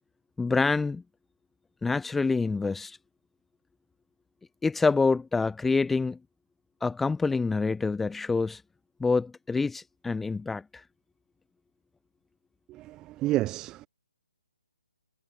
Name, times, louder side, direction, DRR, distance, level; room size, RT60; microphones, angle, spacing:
voice 1, 0.4-1.0 1.8-3.0 4.6-6.2 6.8-8.6 9.0-10.8, left 4 dB, 5° left, 0.5 m, -26 dB
voice 2, 12.7-13.9, right 16 dB, 15° right, 0.8 m, -30 dB
hypercardioid pair, 150°, 3 cm